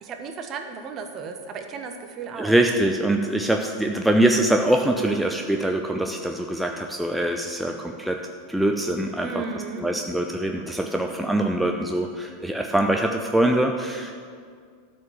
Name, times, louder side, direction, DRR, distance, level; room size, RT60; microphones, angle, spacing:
voice 1, 0.0-2.6 9.2-9.9, right 5 dB, 35° right, 6 dB, 1.1 m, -34 dB
voice 2, 2.4-8.2 8.5-9.4 9.8-14.1, right 1 dB, 5° right, 3 dB, 0.6 m, -23 dB
12.5 x 5.5 x 7.0 m, 2.1 s
figure-of-eight pair, 85°, 0 cm